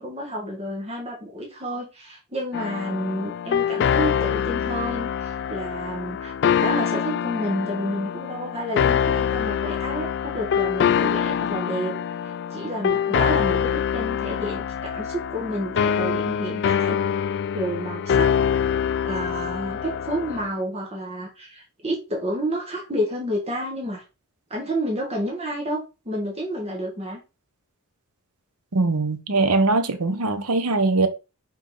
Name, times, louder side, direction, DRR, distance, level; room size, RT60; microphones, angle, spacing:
voice 1, 0.0-6.3 6.6-11.9 12.2-17.0 17.3-18.3 19.0-24.0 24.5-25.8 26.0-27.2, equal, 30° right, 1.6 m, -30 dB
sound 1, 2.5-20.5, left 8 dB, 50° left, 0.3 m, -25 dB
voice 2, 28.7-31.1, right 3 dB, 80° right, 1.0 m, -21 dB
5.5 x 4.5 x 3.9 m
head